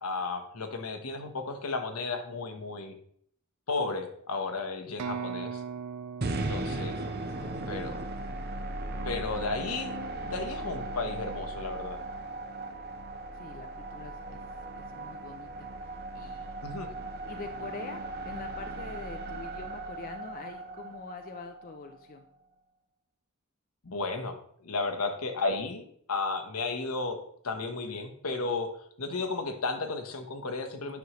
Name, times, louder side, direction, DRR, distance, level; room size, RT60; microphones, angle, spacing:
voice 1, 0.0-2.9 3.7-5.6 6.5-7.0 7.7-8.0 9.0-12.0 16.6-16.9 23.8-27.2 27.4-28.7 29.0-31.0, left 3 dB, 80° left, 6 dB, 1.1 m, -33 dB
sound 1, 5.0-8.8, right 6 dB, 80° right, 0.4 m, -40 dB
sound 2, 6.2-22.3, right 2 dB, 45° right, 0.7 m, -37 dB
voice 2, 6.9-7.5 13.3-14.4 14.8-16.6 17.2-22.3, left 4 dB, 40° left, 6 dB, 0.5 m, -45 dB
9.4 x 6.3 x 3.1 m, 0.65 s
head